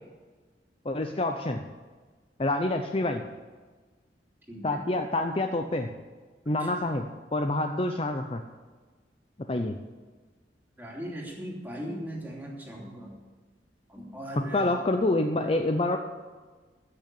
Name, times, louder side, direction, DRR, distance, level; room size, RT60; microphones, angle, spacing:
voice 1, 0.8-1.6 2.4-3.2 4.6-5.9 6.5-7.1 7.3-8.4 9.5-9.7 14.5-16.0, left 2 dB, 30° left, 6 dB, 0.6 m, -27 dB
voice 2, 4.5-4.8 6.5-7.0 10.8-13.2 13.9-14.7, equal, 10° right, -3 dB, 2.9 m, -39 dB
14.5 x 6.5 x 8.5 m, 1.4 s
head